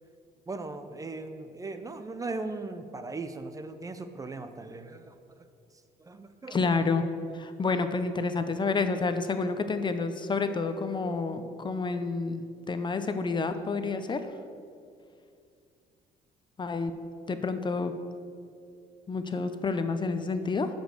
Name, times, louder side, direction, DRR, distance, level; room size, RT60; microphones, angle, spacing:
voice 1, 0.5-5.5 6.0-6.8, right 3 dB, 20° right, 9 dB, 0.6 m, -38 dB
voice 2, 6.5-7.1 7.3-14.2 16.6-16.9 17.3-17.9 19.1-20.7, left 4 dB, 25° left, 9 dB, 0.6 m, -29 dB
12.5 x 5.3 x 6.6 m, 2.3 s
cardioid pair, 110°, 17 cm